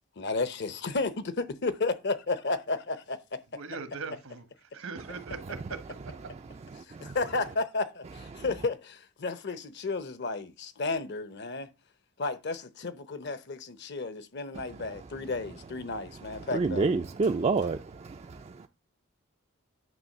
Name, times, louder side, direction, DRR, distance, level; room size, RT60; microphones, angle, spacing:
voice 1, 0.2-3.4 6.9-11.7 12.2-16.9, left 3 dB, 55° left, 0.8 m, -33 dB
voice 2, 3.5-4.5 4.7-5.8 6.2-6.3, right 4 dB, 80° right, 1.3 m, -40 dB
voice 3, 6.7-7.2 8.3-8.5 14.5-15.1 16.1-18.7, right 4 dB, 30° right, 0.3 m, -30 dB
9.4 x 3.1 x 6.5 m
head